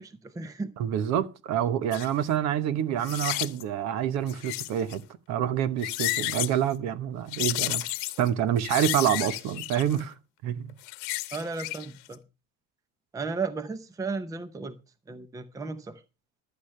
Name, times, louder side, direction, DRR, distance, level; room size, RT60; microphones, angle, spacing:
voice 1, 0.0-0.7 11.3-12.2 13.1-14.8 15.1-16.0, right 4 dB, 10° right, 0.7 m, -34 dB
voice 2, 0.8-5.0 5.3-10.1 10.4-10.7, right 10 dB, 55° right, 1.1 m, -27 dB
sound 1, 1.9-2.1 3.0-3.6 4.3-4.9 5.6-6.6 7.3-8.3 8.6-10.0 10.7-11.9 12.1-12.2, left 22 dB, 80° left, 1.1 m, -32 dB
15.5 x 11.5 x 3.3 m
cardioid pair, 165°, 33 cm